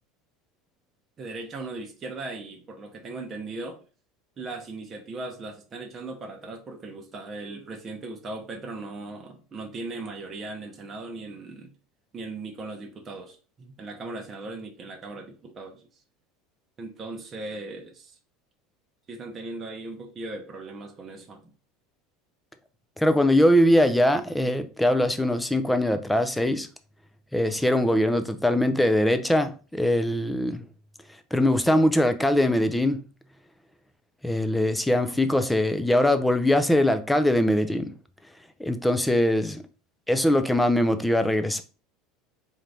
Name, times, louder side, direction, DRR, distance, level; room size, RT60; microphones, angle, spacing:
voice 1, 1.2-3.9 4.4-11.7 12.1-15.9 16.8-18.2 19.1-21.4, right 2 dB, 30° right, 0.7 m, -38 dB
voice 2, 23.0-26.7 27.3-30.6 31.3-33.0 34.2-37.9 38.6-39.6 40.1-41.6, left 1 dB, 5° left, 0.4 m, -22 dB
4.4 x 2.6 x 3.3 m
supercardioid pair, 130°, 0 cm